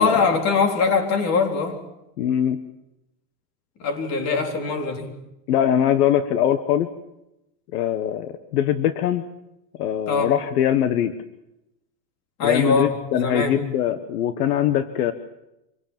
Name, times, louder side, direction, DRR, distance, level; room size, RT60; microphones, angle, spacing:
voice 1, 0.0-1.8 3.8-5.1 10.1-10.3 12.4-13.5, left 4 dB, 30° left, 5 dB, 3.9 m, -22 dB
voice 2, 2.2-2.6 5.5-6.9 7.7-9.2 9.8-11.1 12.4-15.1, left 10 dB, 65° left, 10 dB, 1.5 m, -22 dB
26.5 x 18.0 x 7.4 m, 0.89 s
supercardioid pair, 155°, 48 cm